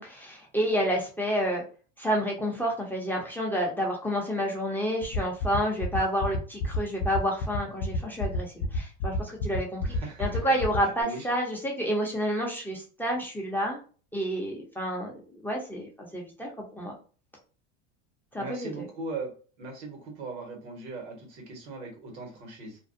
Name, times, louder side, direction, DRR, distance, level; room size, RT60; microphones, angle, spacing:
voice 1, 0.0-1.6 2.0-13.8 14.1-16.9 18.3-18.9, equal, 5° left, -1 dB, 0.4 m, -29 dB
sound 1, 5.0-11.0, left 3 dB, 65° left, 0.6 m, -29 dB
voice 2, 9.8-10.3 11.0-11.3 18.4-19.3 19.6-22.8, right 3 dB, 90° right, 1 dB, 1.2 m, -39 dB
2.5 x 2.0 x 2.5 m, 0.38 s
supercardioid pair, 125°, 33 cm